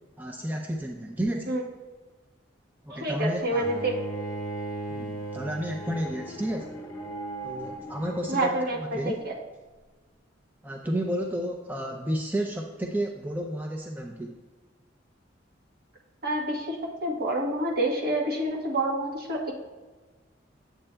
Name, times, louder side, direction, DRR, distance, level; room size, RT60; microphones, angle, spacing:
voice 1, 0.2-1.6 2.8-3.6 4.9-6.8 7.4-8.5 8.8-9.1 10.6-14.4, right 1 dB, 10° right, 2 dB, 0.4 m, -31 dB
voice 2, 2.9-3.9 8.3-9.3 16.2-19.5, right 1 dB, 55° right, -1 dB, 1.2 m, -28 dB
Bowed string instrument, 3.6-8.6, right 1 dB, 20° left, 1.0 m, -37 dB
8.6 x 7.8 x 2.2 m, 1.3 s
head